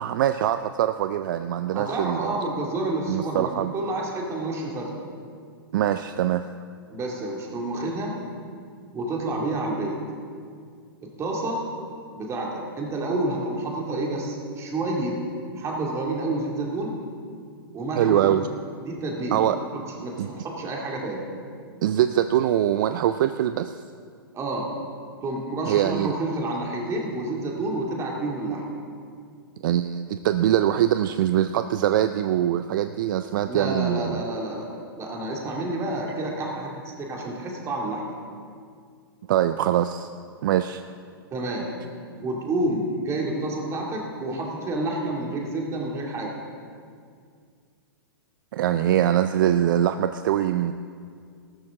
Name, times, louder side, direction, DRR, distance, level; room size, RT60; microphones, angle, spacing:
voice 1, 0.0-2.3 3.1-3.7 5.7-6.4 18.0-18.5 19.3-19.6 20.2-20.5 21.8-23.8 25.6-26.1 29.6-34.2 39.3-40.1 40.4-40.8 48.5-50.7, right 11 dB, 55° right, 10 dB, 0.4 m, -23 dB
voice 2, 1.7-4.9 6.9-8.1 8.9-10.0 11.0-11.6 12.2-15.2 15.5-17.0 17.7-18.4 18.8-19.4 19.7-21.3 24.3-24.7 25.2-28.7 33.4-34.7 35.0-36.7 37.0-38.0 41.3-41.7 42.2-46.3, right 2 dB, 20° right, -1 dB, 2.4 m, -29 dB
14.0 x 13.0 x 3.7 m, 2.2 s
hypercardioid pair, 125°, 13 cm